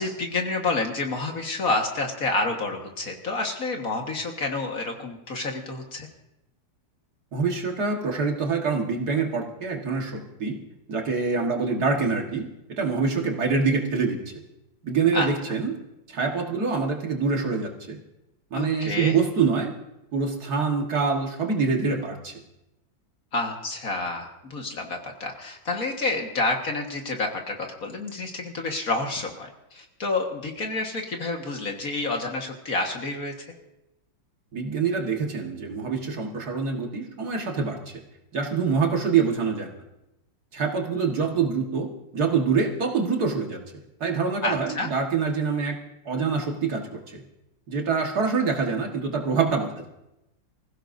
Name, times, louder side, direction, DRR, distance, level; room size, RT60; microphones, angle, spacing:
voice 1, 0.0-6.1 15.1-15.3 18.5-19.2 23.3-33.5 44.4-44.9, left 2 dB, 50° left, 2 dB, 1.9 m, -29 dB
voice 2, 7.3-10.6 10.9-14.2 14.8-15.7 16.1-18.0 18.5-19.7 20.1-22.3 34.5-38.0 38.3-39.7 40.5-41.9 42.1-43.6 44.0-45.8 46.1-47.2 47.7-49.7, right 5 dB, 55° right, 1 dB, 2.1 m, -25 dB
25.5 x 15.5 x 2.7 m, 0.89 s
omnidirectional pair, 2.1 m